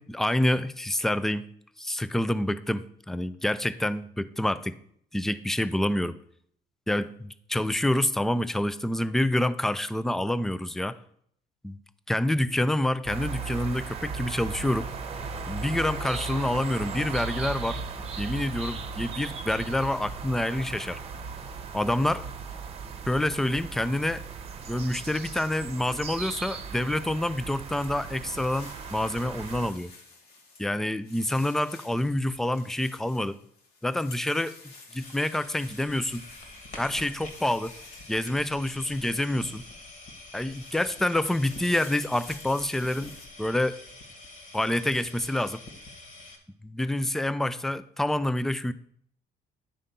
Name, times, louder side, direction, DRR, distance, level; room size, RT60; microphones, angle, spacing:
voice 1, 0.0-1.5 1.8-4.8 5.1-6.2 6.9-11.0 11.6-11.8 12.1-14.9 15.5-17.8 18.2-21.0 21.7-22.2 23.1-24.2 24.7-29.9 30.6-33.4 33.8-34.5 34.9-36.2 36.8-37.7 38.1-39.6 40.3-43.1 43.4-43.8 44.5-45.6 46.6-48.7, left 1 dB, ahead, 15 dB, 0.3 m, -27 dB
sound 1, 13.0-29.7, right 5 dB, 35° right, 0.9 m, -37 dB
sound 2, 27.2-39.8 40.3-43.3, left 3 dB, 70° left, 1.8 m, -51 dB
sound 3, 35.0-46.4, left 2 dB, 55° left, 1.9 m, -46 dB
10.0 x 3.8 x 5.4 m, 0.65 s
cardioid pair, 110°, 17 cm